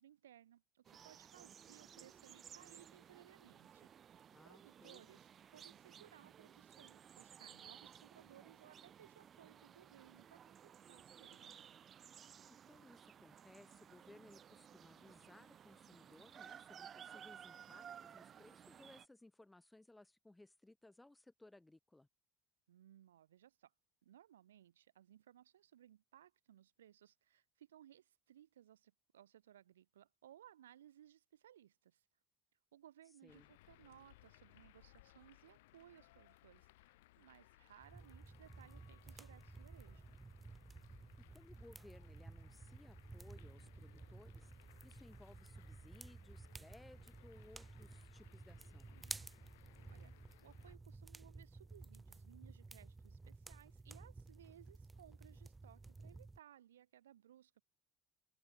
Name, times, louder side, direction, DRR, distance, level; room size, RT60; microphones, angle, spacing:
voice 1, 0.0-11.7 22.7-23.7 24.0-32.1 32.7-40.1 49.9-50.1 50.4-57.6, right 11 dB, 70° right, 1.0 m, -63 dB
sound 1, 0.8-19.1, right 8 dB, 35° right, 1.2 m, -58 dB
voice 2, 4.3-5.1 12.5-22.1 33.2-33.5 41.3-48.9, left 2 dB, 10° left, 4.4 m, -62 dB
sound 2, 33.3-50.8, left 20 dB, 65° left, 0.5 m, -66 dB
sound 3, 37.8-56.4, right 3 dB, 15° right, 0.3 m, -54 dB
open air
figure-of-eight pair, 65°, 0 cm